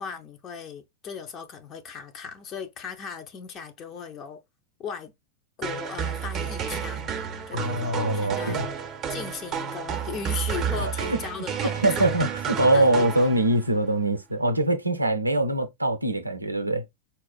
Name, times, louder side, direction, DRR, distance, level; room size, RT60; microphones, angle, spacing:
voice 1, 0.0-4.4 4.8-5.1 5.6-7.1 7.5-8.6 9.1-12.2 12.5-13.3, left 6 dB, 30° left, 0.6 m, -37 dB
sound 1, 5.6-13.7, right 7 dB, 30° right, 0.6 m, -31 dB
voice 2, 7.5-8.6 10.8-11.2 11.8-16.8, right 1 dB, 85° right, 0.4 m, -23 dB
4.1 x 2.4 x 2.2 m
figure-of-eight pair, 90°, 0 cm